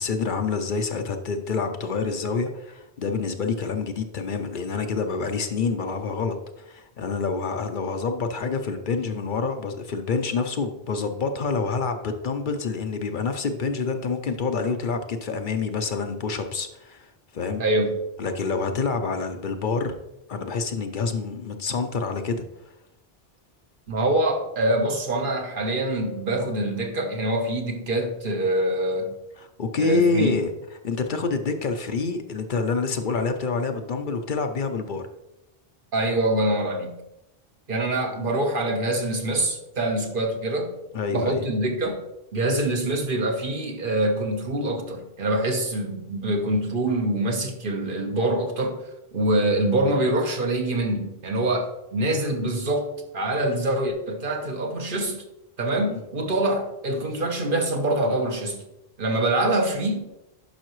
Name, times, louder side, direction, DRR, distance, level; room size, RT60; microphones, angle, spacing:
voice 1, 0.0-17.1 17.3-17.6 18.2-19.9 20.3-22.4 29.4-30.5 30.8-35.1 38.1-38.3 40.9-41.4 55.9-56.0, left 4 dB, 55° left, 7 dB, 0.7 m, -27 dB
voice 2, 17.6-18.0 23.9-29.2 29.8-30.4 35.9-36.9 37.7-40.7 41.1-42.0 42.3-48.8 49.1-55.2 55.6-58.6 59.0-60.0, right 1 dB, 55° right, 3 dB, 1.2 m, -25 dB
10.5 x 5.6 x 3.1 m, 0.92 s
omnidirectional pair, 1.0 m